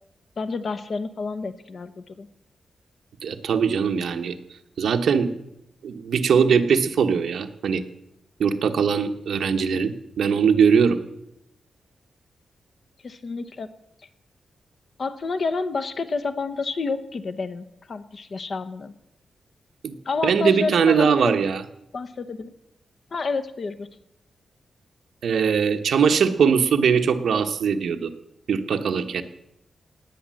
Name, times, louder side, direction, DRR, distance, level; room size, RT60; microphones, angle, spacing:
voice 1, 0.4-2.3 13.0-13.7 15.0-18.9 20.0-21.3 21.9-22.5 23.1-23.9, left 4 dB, 40° left, 12 dB, 0.9 m, -29 dB
voice 2, 3.2-4.4 4.8-5.3 5.8-7.8 8.4-11.0 19.8-19.9 20.2-21.6 25.2-28.1 28.5-29.2, right 6 dB, 65° right, 7 dB, 1.2 m, -21 dB
17.5 x 9.3 x 7.7 m, 0.83 s
wide cardioid pair, 175°, 0 cm